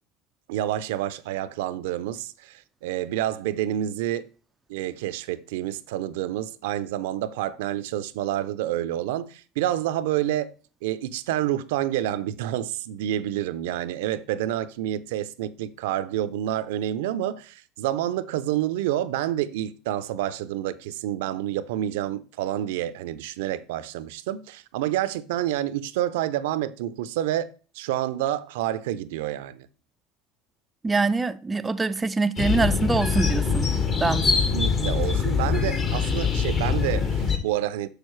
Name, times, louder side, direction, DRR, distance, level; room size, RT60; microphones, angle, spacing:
voice 1, 0.5-4.3 4.7-10.5 10.8-27.5 27.7-29.7 34.5-37.9, right 12 dB, 80° right, 0.5 m, -28 dB
voice 2, 30.8-33.7 34.0-34.3, right 3 dB, 15° right, 0.3 m, -24 dB
sound 1, 32.4-37.4, left 5 dB, 35° left, 1.3 m, -24 dB
6.5 x 6.4 x 3.1 m
supercardioid pair, 110°, 0 cm